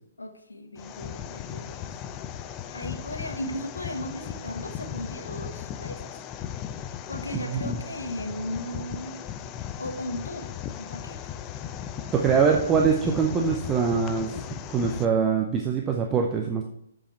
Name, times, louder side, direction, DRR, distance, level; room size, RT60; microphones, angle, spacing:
voice 1, 0.2-1.9 2.7-6.0 7.1-9.2 9.8-10.5 10.8-11.2, left 1 dB, 75° left, 5 dB, 1.1 m, -36 dB
sound 1, 0.8-15.1, left 9 dB, 25° left, 0.4 m, -37 dB
voice 2, 7.5-7.8 12.1-14.4 14.7-16.6, right 6 dB, 15° right, 2 dB, 0.6 m, -23 dB
7.3 x 5.1 x 4.3 m, 0.75 s
figure-of-eight pair, 125°, 0 cm